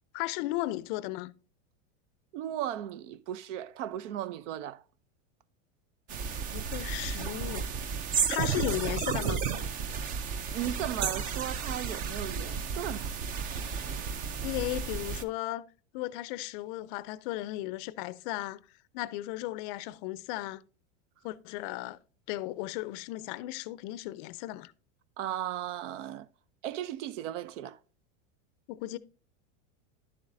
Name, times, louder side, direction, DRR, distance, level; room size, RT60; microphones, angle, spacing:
voice 1, 0.1-1.3 6.5-7.6 8.3-9.4 14.4-15.6 15.9-18.6 18.9-20.6 21.2-22.0 22.3-24.7 28.7-29.0, left 17 dB, 45° left, 0.4 m, -35 dB
voice 2, 2.3-4.8 6.6-6.7 10.1-13.1 25.2-26.3 26.6-27.8, right 11 dB, 80° right, 0.6 m, -36 dB
sound 1, 6.1-15.2, right 6 dB, 25° right, 0.4 m, -33 dB
11.0 x 7.2 x 2.5 m
supercardioid pair, 140°, 36 cm